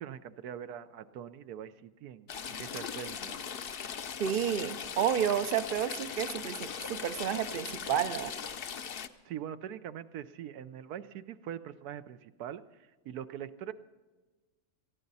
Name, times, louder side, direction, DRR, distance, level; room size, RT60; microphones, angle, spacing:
voice 1, 0.0-3.4 9.2-13.7, right 9 dB, 90° right, 12 dB, 1.2 m, -43 dB
Stream / Trickle dribble, 2.3-9.1, left 7 dB, 55° left, 0.6 m, -39 dB
voice 2, 4.2-8.3, right 9 dB, 60° right, 12 dB, 0.5 m, -31 dB
19.0 x 14.5 x 4.1 m, 1.2 s
omnidirectional pair, 1.6 m